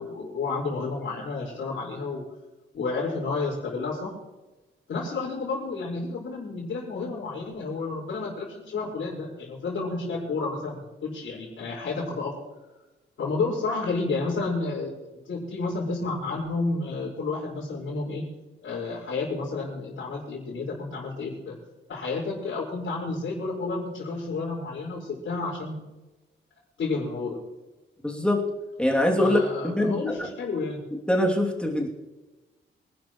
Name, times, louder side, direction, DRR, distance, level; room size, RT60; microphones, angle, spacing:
voice 1, 0.0-2.2 2.7-4.2 4.9-12.6 13.2-14.9 15.3-18.2 18.6-21.5 21.9-25.8 26.8-27.4 29.2-30.9, left 3 dB, 80° left, -8 dB, 5.1 m, -31 dB
voice 2, 28.0-28.4 28.8-29.9 31.1-31.9, left 1 dB, 5° left, -1 dB, 2.8 m, -23 dB
25.5 x 12.0 x 3.2 m, 1.1 s
wide cardioid pair, 140°, 20 cm